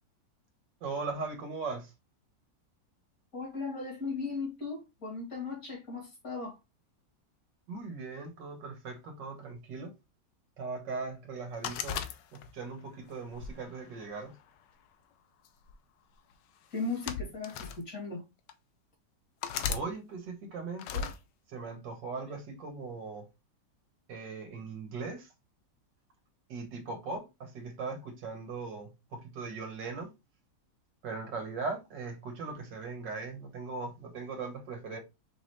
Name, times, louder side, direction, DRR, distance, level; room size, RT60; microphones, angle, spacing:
voice 1, 0.8-1.9 7.7-9.9 10.6-12.0 12.5-14.3 19.7-21.1 21.5-23.2 24.1-25.3 26.5-30.1 31.0-35.0, right 4 dB, 80° right, 1.8 m, -39 dB
voice 2, 3.3-6.6 16.7-18.2, left 3 dB, 50° left, 2.9 m, -37 dB
sound 1, 11.6-12.7 13.3-14.5 15.5-15.7 16.7-17.8 18.5-18.6 19.4-19.9 20.8-21.2, left 7 dB, 85° left, 1.3 m, -36 dB
5.7 x 2.8 x 3.2 m
omnidirectional pair, 1.9 m